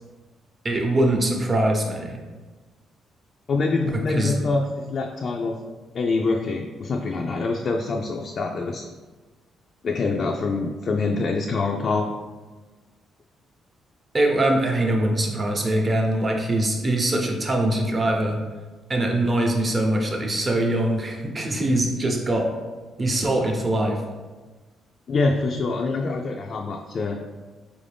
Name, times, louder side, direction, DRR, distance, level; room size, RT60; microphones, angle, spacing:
voice 1, 0.6-2.2 4.1-4.3 14.1-18.4 18.9-22.5 23.0-24.0, right 1 dB, 35° right, 1 dB, 0.7 m, -22 dB
voice 2, 3.5-5.6 5.9-8.9 9.8-12.1 25.1-27.2, left 3 dB, 50° left, 1 dB, 0.3 m, -25 dB
4.5 x 2.5 x 3.4 m, 1.3 s
cardioid pair, 90°, 0 cm